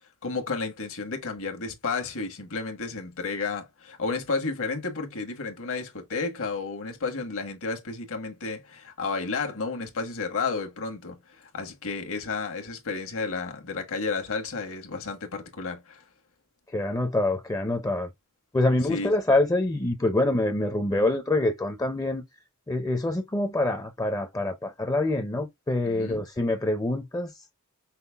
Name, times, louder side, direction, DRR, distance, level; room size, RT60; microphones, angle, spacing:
voice 1, 0.2-16.0 18.9-19.1 25.9-26.2, left 4 dB, 65° left, 1.3 m, -32 dB
voice 2, 16.7-18.1 18.5-22.2 22.7-27.3, left 2 dB, 15° left, 0.5 m, -25 dB
5.7 x 2.0 x 3.4 m
head